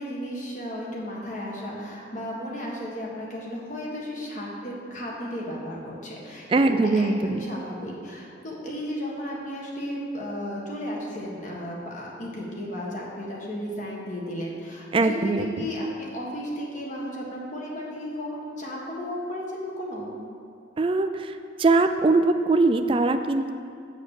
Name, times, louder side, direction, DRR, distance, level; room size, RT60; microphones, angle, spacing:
voice 1, 0.0-20.2, equal, 40° left, -3 dB, 1.6 m, -34 dB
voice 2, 6.5-7.4 14.9-15.7 20.8-21.3 21.6-23.5, right 3 dB, 30° right, 8 dB, 0.3 m, -21 dB
7.3 x 6.3 x 6.6 m, 2.4 s
head